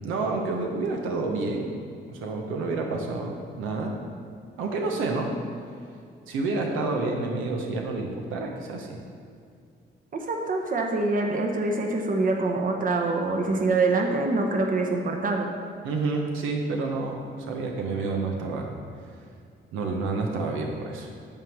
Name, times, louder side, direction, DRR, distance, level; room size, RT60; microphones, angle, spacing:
voice 1, 0.0-1.7 2.1-3.9 4.6-5.3 6.3-9.0 15.8-18.7 19.7-21.1, right 3 dB, 90° right, 1 dB, 1.0 m, -29 dB
voice 2, 10.1-15.5, right 3 dB, 45° right, 3 dB, 1.0 m, -25 dB
8.8 x 3.7 x 6.4 m, 2.3 s
cardioid pair, 90°, 20 cm